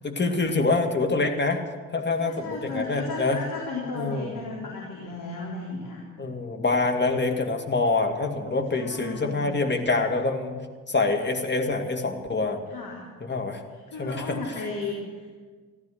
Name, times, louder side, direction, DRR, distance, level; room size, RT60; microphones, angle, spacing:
voice 1, 0.0-1.6 1.9-3.4 4.0-4.3 6.2-10.6 10.9-12.6 13.2-13.6 14.0-14.4, left 3 dB, 25° left, 5 dB, 2.2 m, -25 dB
voice 2, 2.2-6.0 8.7-9.6 12.7-13.1 13.7-15.4, left 3 dB, 50° left, -3 dB, 3.6 m, -35 dB
14.5 x 12.0 x 7.6 m, 1.5 s
hypercardioid pair, 50°, 40 cm